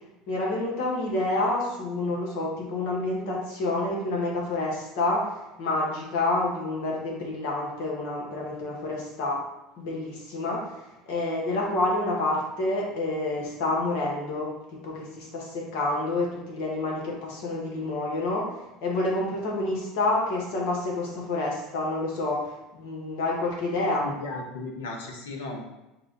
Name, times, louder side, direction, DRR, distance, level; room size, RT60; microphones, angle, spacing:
voice 1, 0.3-5.3 5.6-9.4 9.8-18.5 18.8-24.0, left 2 dB, 70° left, -2 dB, 1.5 m, -28 dB
voice 2, 24.0-25.6, left 3 dB, 90° left, 1 dB, 1.0 m, -35 dB
5.4 x 2.5 x 4.0 m, 0.97 s
supercardioid pair, 105°, 0 cm